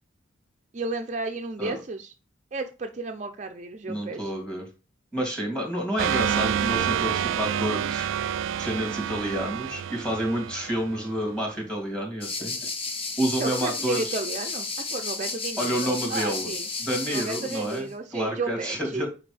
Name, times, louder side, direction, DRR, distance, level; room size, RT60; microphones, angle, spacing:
voice 1, 0.7-2.1 2.5-4.3 12.6-12.7 13.4-16.7 17.1-19.0, right 3 dB, 40° right, 5 dB, 0.6 m, -33 dB
voice 2, 3.9-4.7 5.1-8.1 8.6-12.5 13.2-14.1 15.6-16.5 16.8-17.9 18.1-19.1, equal, 5° left, 0 dB, 2.8 m, -29 dB
sound 1, 6.0-11.4, right 9 dB, 85° right, 0.3 m, -28 dB
sound 2, 12.2-17.8, left 4 dB, 30° left, 0.9 m, -33 dB
8.7 x 4.9 x 3.4 m, 0.32 s
head